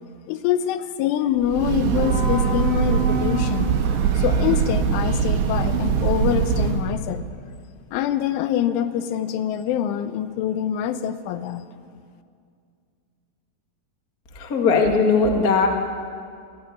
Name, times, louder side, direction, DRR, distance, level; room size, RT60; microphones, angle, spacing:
voice 1, 0.3-3.7 4.2-7.3 7.9-11.6, left 10 dB, 85° left, 10 dB, 3.4 m, -25 dB
Breathing / Train, 1.4-6.9, right 6 dB, 70° right, 3.6 m, -22 dB
voice 2, 14.3-15.7, left 4 dB, 60° left, 2 dB, 0.9 m, -19 dB
22.0 x 16.5 x 9.2 m, 2.2 s
omnidirectional pair, 5.6 m